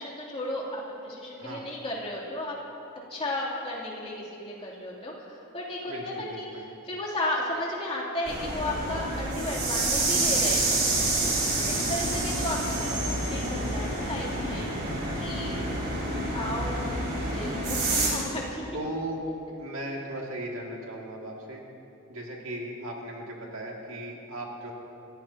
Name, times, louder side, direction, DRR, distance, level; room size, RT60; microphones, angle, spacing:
voice 1, 0.0-2.6 3.1-10.8 11.2-11.3 11.7-14.8 15.2-15.6 16.3-16.7 17.3-18.7, left 1 dB, 25° left, -5 dB, 3.1 m, -34 dB
voice 2, 5.9-6.6 11.4-12.1 15.4-16.1 18.7-19.2 19.6-21.6 22.1-24.7, right 1 dB, 65° right, -2 dB, 2.4 m, -37 dB
sound 1, 8.2-18.1, right 2 dB, 50° right, 4.2 m, -28 dB
26.5 x 15.0 x 2.9 m, 2.9 s
head